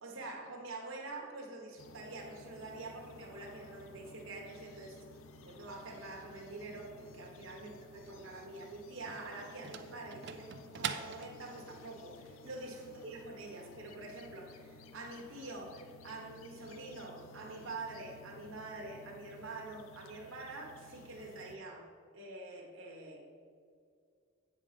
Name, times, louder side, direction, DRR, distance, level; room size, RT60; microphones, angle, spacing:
voice 1, 0.0-5.1 5.4-23.3, right 2 dB, 90° right, -1 dB, 1.3 m, -46 dB
sound 1, 1.8-21.6, left 2 dB, 85° left, 0.5 m, -55 dB
sound 2, 8.3-11.8, right 7 dB, 55° right, 0.4 m, -43 dB
8.3 x 5.5 x 5.0 m, 2.3 s
head